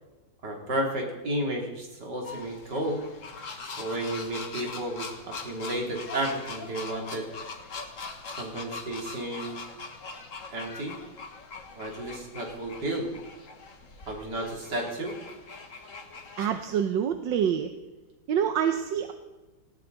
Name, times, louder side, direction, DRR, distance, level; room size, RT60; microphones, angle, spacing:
voice 1, 0.4-3.0 3.8-7.3 8.3-9.7 10.5-11.0 11.8-13.1 14.1-15.2, right 1 dB, 65° right, 0 dB, 3.7 m, -32 dB
sound 1, 2.2-16.6, left 4 dB, 45° left, 1.8 m, -42 dB
voice 2, 16.4-17.7 18.3-19.1, right 8 dB, 80° right, 7 dB, 1.6 m, -26 dB
18.5 x 17.0 x 4.0 m, 1.1 s
omnidirectional pair, 2.0 m